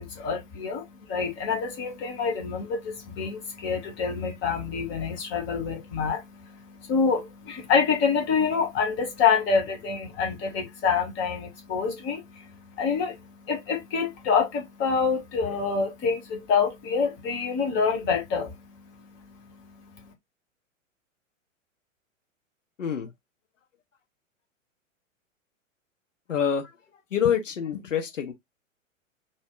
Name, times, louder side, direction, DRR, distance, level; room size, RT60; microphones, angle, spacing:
voice 1, 0.0-20.1, left 5 dB, 30° left, 1.5 m, -27 dB
voice 2, 22.8-23.1 26.3-26.7 27.1-28.3, left 8 dB, 70° left, 1.3 m, -26 dB
4.1 x 2.3 x 3.9 m
figure-of-eight pair, 105°, 40 cm